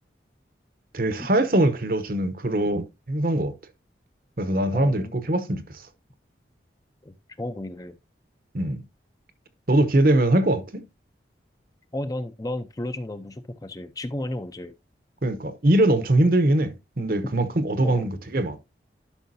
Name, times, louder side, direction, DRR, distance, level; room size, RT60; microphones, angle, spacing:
voice 1, 0.9-3.5 4.4-5.6 8.5-8.8 9.7-10.8 15.2-18.6, right 1 dB, 50° right, 0.9 m, -22 dB
voice 2, 4.7-5.2 7.0-7.9 11.9-14.7 17.8-18.1, left 1 dB, 20° left, 0.6 m, -33 dB
11.5 x 5.7 x 2.7 m
head